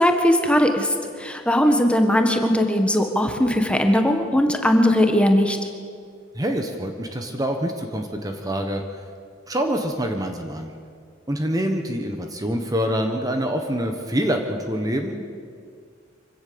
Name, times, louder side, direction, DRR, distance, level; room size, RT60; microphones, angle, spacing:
voice 1, 0.0-5.6, equal, 5° left, 4 dB, 1.5 m, -19 dB
voice 2, 6.3-8.8 9.5-10.7 11.3-15.2, equal, 20° right, 4 dB, 1.3 m, -25 dB
25.0 x 16.5 x 7.0 m, 2.2 s
head